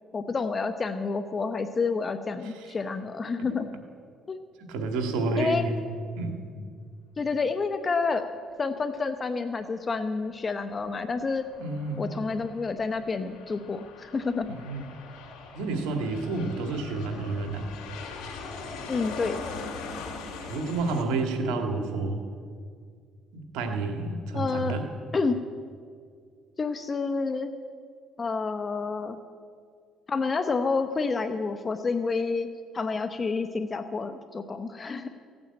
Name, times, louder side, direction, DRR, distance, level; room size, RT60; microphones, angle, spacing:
voice 1, 0.1-3.7 4.3-4.4 5.4-5.6 7.2-8.3 8.6-11.4 12.0-14.5 18.9-19.4 24.3-24.7 25.1-25.4 26.6-27.5 28.2-29.2 30.1-32.5 32.7-35.1, left 4 dB, 30° left, 9 dB, 0.8 m, -29 dB
voice 2, 2.4-2.7 3.5-3.6 4.7-5.8 6.2-6.5 11.6-12.1 14.5-14.9 15.5-17.7 20.4-22.3 23.3-24.8, right 3 dB, 85° right, 5 dB, 1.9 m, -30 dB
Aircraft, 10.8-21.0, left 4 dB, 80° left, 2.6 m, -41 dB
16.0 x 8.9 x 8.6 m, 2.1 s
cardioid pair, 90°, 0 cm